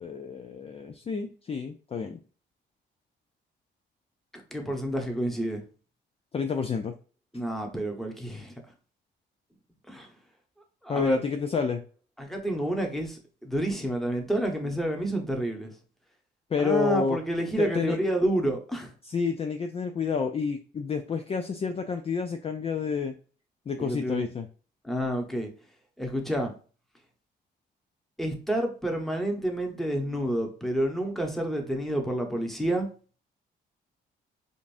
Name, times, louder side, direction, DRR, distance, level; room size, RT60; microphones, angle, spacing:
voice 1, 0.0-2.2 6.3-6.9 10.9-11.8 16.5-17.2 17.6-18.0 19.0-23.1 23.7-24.5, left 5 dB, 30° left, 6 dB, 0.4 m, -29 dB
voice 2, 4.5-5.6 7.3-8.5 9.9-10.1 10.8-11.2 12.2-15.7 16.6-18.9 23.8-24.3 24.8-25.5 26.0-26.5 28.2-32.9, right 1 dB, ahead, 2 dB, 1.0 m, -29 dB
5.1 x 2.5 x 2.5 m, 0.39 s
cardioid pair, 90°, 20 cm